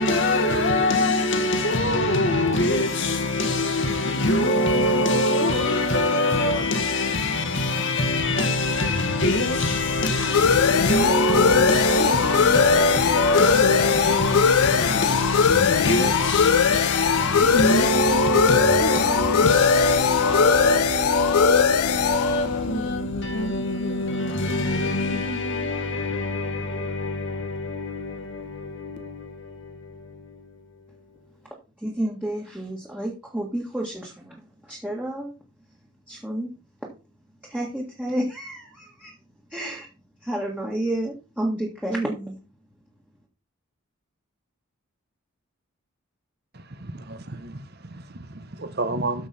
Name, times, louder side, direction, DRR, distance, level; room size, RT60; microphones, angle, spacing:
voice 1, 0.0-31.0, left 2 dB, 55° left, 1.6 m, -23 dB
sound 1, 8.5-23.8, left 7 dB, 90° left, 0.5 m, -22 dB
voice 2, 31.8-35.3 36.1-36.5 37.4-39.1 39.5-39.9 40.2-42.4, right 1 dB, 5° right, 1.8 m, -30 dB
voice 3, 46.5-49.3, right 2 dB, 45° right, 1.1 m, -32 dB
13.0 x 5.4 x 4.3 m
head